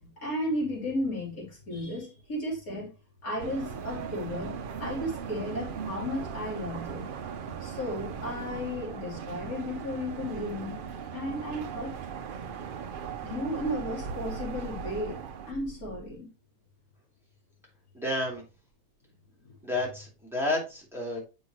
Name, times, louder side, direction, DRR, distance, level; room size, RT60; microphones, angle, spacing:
voice 1, 0.0-2.9 3.2-7.1 7.6-10.8 11.1-11.9 13.2-15.2 15.5-16.3, left 1 dB, 70° left, 3.6 m, -34 dB
sound 1, 3.4-15.5, right 7 dB, 70° right, 0.5 m, -38 dB
sound 2, 13.4-16.2, right 3 dB, 55° right, 1.1 m, -44 dB
voice 2, 17.9-18.4 19.6-21.2, left 2 dB, ahead, 2.5 m, -30 dB
8.2 x 5.5 x 2.9 m
omnidirectional pair, 1.5 m